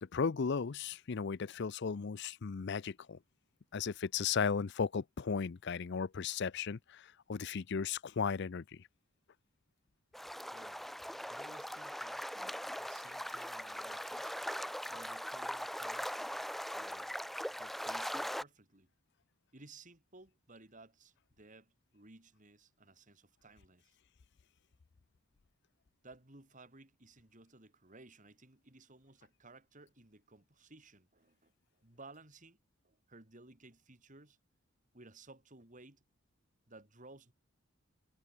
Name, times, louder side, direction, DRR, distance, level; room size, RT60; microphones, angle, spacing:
voice 1, 0.0-3.2 3.7-8.8 12.4-12.5, left 5 dB, 55° left, 0.5 m, -36 dB
sound 1, 10.1-18.4, equal, ahead, 0.8 m, -40 dB
voice 2, 10.5-10.9 11.3-12.2 12.8-14.3 14.9-16.2 16.7-17.1 17.6-18.9 19.5-24.0 26.0-32.6 32.8-34.4 34.9-36.0 36.7-37.3, right 2 dB, 35° right, 3.0 m, -58 dB
head